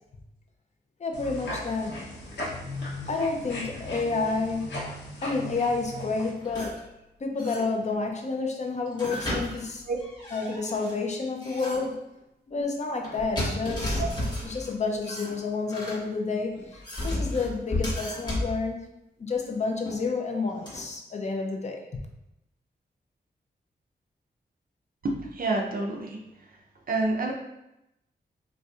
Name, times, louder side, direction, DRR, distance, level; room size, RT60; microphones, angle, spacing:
voice 1, 1.0-2.0 3.1-4.7 5.2-6.8 7.2-9.8 10.3-12.0 12.5-14.0 14.4-18.8 19.2-22.0, left 4 dB, 40° left, 2 dB, 0.5 m, -30 dB
sound 1, 1.1-6.3, left 1 dB, 85° left, 0.9 m, -37 dB
sound 2, 6.4-6.8 7.4-8.0 8.9-10.9 11.4-11.9 13.0-14.7 15.0-16.0 16.6-18.6 19.9-20.0 20.7-20.8, left 1 dB, 25° left, 1.3 m, -33 dB
voice 2, 25.0-26.5 26.9-27.3, right 2 dB, 55° right, 0 dB, 0.6 m, -29 dB
4.2 x 2.5 x 2.3 m, 0.87 s
wide cardioid pair, 125°, 18 cm